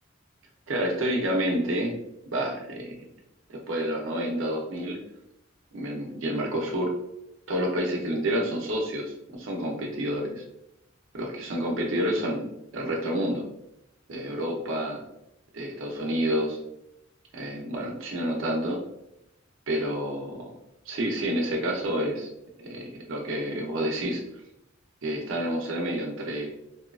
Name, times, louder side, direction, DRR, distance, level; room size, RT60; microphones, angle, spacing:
voice 1, 0.7-1.9 2.3-2.9 3.5-5.0 5.7-6.9 7.5-10.4 11.1-12.4 12.7-13.4 14.1-15.0 15.5-16.6 17.3-18.8 19.7-20.5 20.9-22.3 22.6-24.2 25.0-26.5, equal, 80° right, 0 dB, 0.6 m, -29 dB
2.8 x 2.3 x 2.3 m, 0.84 s
head